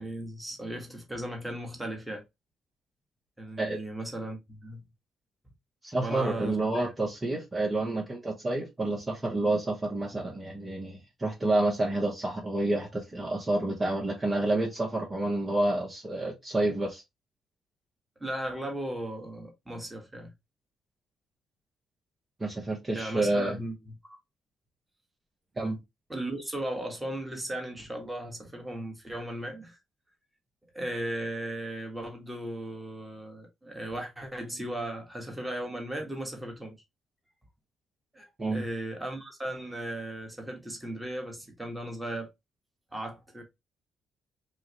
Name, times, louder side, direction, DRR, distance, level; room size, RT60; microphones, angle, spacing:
voice 1, 0.0-2.2 3.4-4.9 6.0-6.9 18.2-20.3 22.9-24.2 26.1-29.8 30.7-36.7 38.1-42.3 42.9-43.4, right 1 dB, 10° right, 1.6 m, -36 dB
voice 2, 5.8-17.0 22.4-23.6 25.6-25.8 38.4-38.6, right 2 dB, 25° right, 1.3 m, -29 dB
4.6 x 2.5 x 3.2 m
cardioid pair, 90°, 0 cm